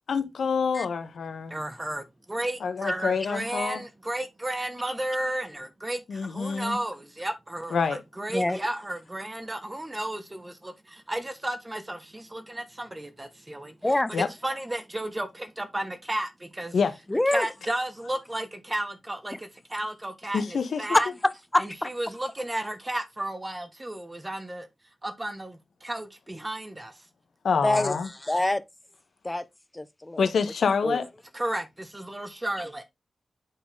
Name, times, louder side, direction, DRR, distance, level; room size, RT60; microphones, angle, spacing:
voice 1, 0.1-1.6 2.6-3.8 6.1-6.8 7.7-8.0 14.1-14.3 16.7-16.9 20.3-20.8 27.4-28.1 30.2-31.0, left 5 dB, 85° left, 1.1 m, -26 dB
voice 2, 1.5-13.8 14.2-16.8 17.3-21.1 21.6-24.7 25.0-27.0 31.3-32.8, right 1 dB, 20° right, 1.1 m, -33 dB
voice 3, 13.8-14.1 17.1-17.5 19.3-19.4 20.9-21.9 27.6-28.6 29.2-29.4 29.7-30.3 30.8-31.0, left 1 dB, 15° left, 0.6 m, -25 dB
8.3 x 4.1 x 3.6 m
wide cardioid pair, 95°, 0 cm